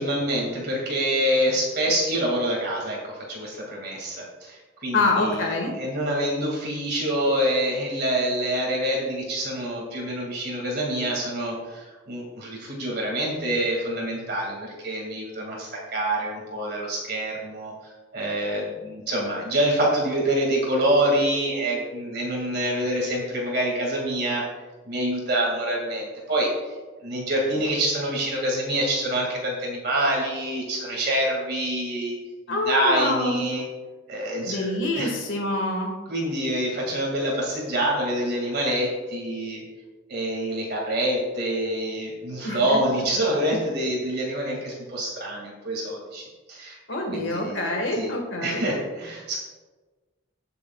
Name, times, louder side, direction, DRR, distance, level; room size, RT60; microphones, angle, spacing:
voice 1, 0.0-17.7 18.1-24.5 24.9-26.8 27.0-32.2 32.5-33.6 34.1-35.1 36.1-39.6 40.1-46.8 47.1-48.1 48.4-49.4, right 1 dB, 50° right, -2 dB, 2.1 m, -26 dB
voice 2, 4.9-5.7 32.5-33.4 34.5-35.9 42.4-42.8 46.9-48.6, left 2 dB, 75° left, 1 dB, 1.6 m, -26 dB
19.5 x 6.8 x 2.3 m, 1.3 s
head